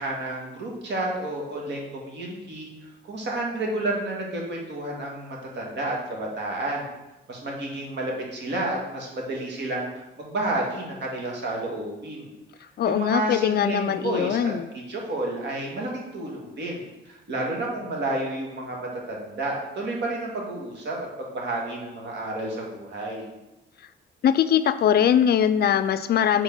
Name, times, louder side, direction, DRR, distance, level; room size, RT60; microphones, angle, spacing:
voice 1, 0.0-2.7 3.1-6.9 7.3-12.3 12.8-23.3, right 2 dB, 60° right, -1 dB, 1.8 m, -31 dB
voice 2, 12.8-14.7 24.2-26.4, left 9 dB, 55° left, 12 dB, 0.4 m, -21 dB
4.8 x 4.2 x 5.4 m, 0.97 s
cardioid pair, 90°, 20 cm